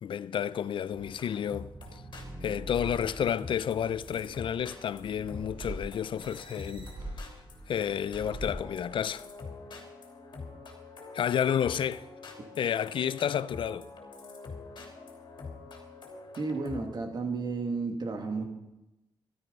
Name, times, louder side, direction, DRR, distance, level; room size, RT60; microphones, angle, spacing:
voice 1, 0.0-2.0 2.4-6.9 7.7-9.3 11.1-12.1 12.6-13.9, left 9 dB, 85° left, 0.5 m, -31 dB
sound 1, 0.9-16.9, left 3 dB, 70° left, 3.0 m, -46 dB
sound 2, 0.9-9.2, right 1 dB, 80° right, 4.7 m, -44 dB
voice 2, 16.4-18.4, right 4 dB, 60° right, 2.4 m, -32 dB
14.0 x 12.5 x 5.4 m
wide cardioid pair, 115°, 8 cm